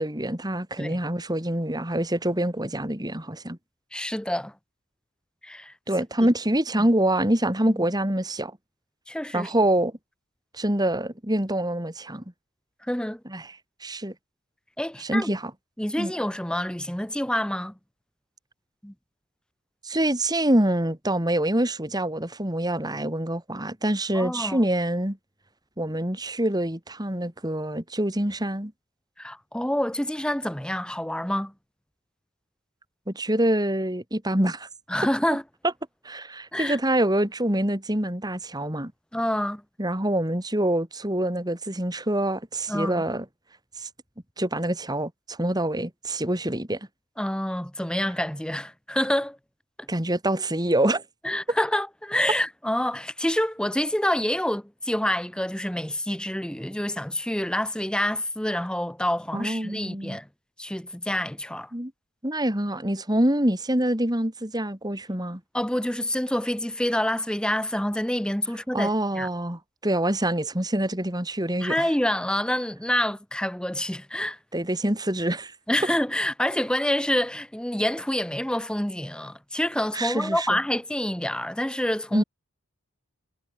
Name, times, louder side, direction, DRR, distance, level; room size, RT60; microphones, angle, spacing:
voice 1, 0.0-3.6 5.9-8.5 9.3-9.9 10.5-12.2 13.3-13.5 13.8-14.1 15.0-15.5 16.0-16.1 19.8-25.2 25.8-28.7 33.1-34.7 36.0-38.9 39.8-43.2 43.8-43.9 44.4-46.8 49.9-51.0 59.3-60.2 61.7-61.9 62.2-65.4 68.7-71.9 74.5-75.5 79.9-80.6 82.1-82.2, right 1 dB, 20° right, 3.1 m, -25 dB
voice 2, 3.9-4.5 5.4-5.7 6.8-6.9 7.6-7.9 9.1-9.5 12.8-13.2 14.8-15.3 15.8-17.7 18.8-18.9 24.1-24.6 29.2-31.5 34.9-35.4 36.5-36.8 39.1-39.6 42.7-43.0 47.2-49.4 49.8-49.9 51.2-60.3 60.6-61.7 65.5-69.3 71.6-74.4 75.7-82.2, left 1 dB, 5° left, 0.9 m, -27 dB
head